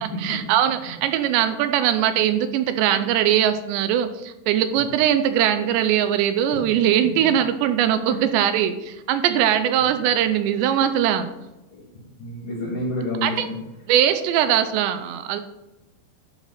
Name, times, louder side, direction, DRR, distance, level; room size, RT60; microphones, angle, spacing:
voice 1, 0.0-11.3 13.2-13.5 13.9-15.4, right 10 dB, 85° right, 10 dB, 2.8 m, -21 dB
voice 2, 12.2-13.5, left 1 dB, 50° left, -7 dB, 3.1 m, -29 dB
11.5 x 5.1 x 5.5 m, 1.0 s
omnidirectional pair, 5.3 m